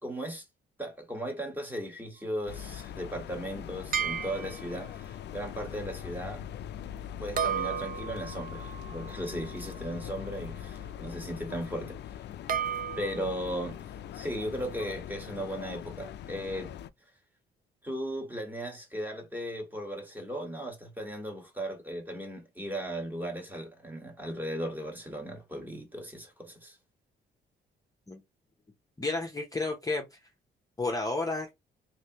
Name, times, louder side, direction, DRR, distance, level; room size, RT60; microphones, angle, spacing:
voice 1, 0.0-0.4 0.8-6.4 7.2-12.0 13.0-13.8 14.1-16.7 17.8-26.8, equal, 10° right, 1.3 m, -37 dB
sound 1, 2.5-16.9, left 10 dB, 60° left, 0.4 m, -42 dB
sound 2, 3.9-5.0 7.4-10.5 12.5-13.4, right 8 dB, 45° right, 0.5 m, -35 dB
voice 2, 29.0-30.2 30.8-31.5, left 3 dB, 15° left, 0.7 m, -31 dB
3.1 x 2.7 x 2.9 m
cardioid pair, 90°, 20 cm